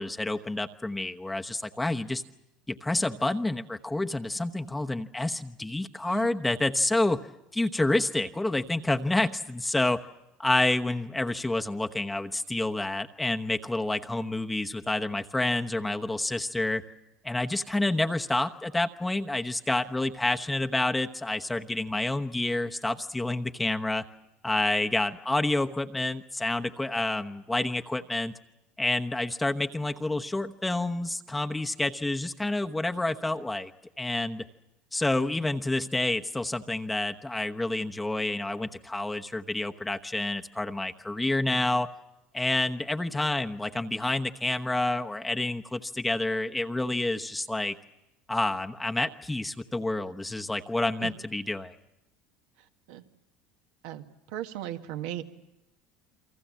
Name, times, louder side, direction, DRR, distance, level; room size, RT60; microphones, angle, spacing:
voice 1, 0.0-2.2 2.7-7.3 7.5-10.0 10.4-16.8 17.2-24.0 24.4-28.3 28.8-33.7 34.0-34.5 34.9-41.9 42.3-47.8 48.3-51.8, left 2 dB, 10° left, 5 dB, 1.0 m, -28 dB
voice 2, 54.3-55.2, right 12 dB, 75° right, 6 dB, 1.6 m, -36 dB
28.5 x 23.5 x 7.4 m, 0.93 s
hypercardioid pair, 85°, 0 cm